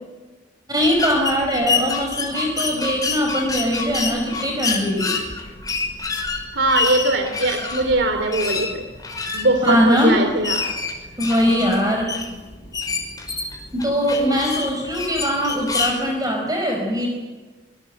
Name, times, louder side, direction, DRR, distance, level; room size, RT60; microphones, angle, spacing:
voice 1, 0.7-5.2 9.6-10.1 11.2-12.1 13.7-17.1, equal, 20° right, 1 dB, 5.2 m, -21 dB
sound 1, 0.8-16.0, left 4 dB, 20° left, 5.7 m, -27 dB
voice 2, 6.5-8.8 9.3-10.7, right 2 dB, 75° right, 6 dB, 2.8 m, -21 dB
27.0 x 25.0 x 7.8 m, 1.3 s
head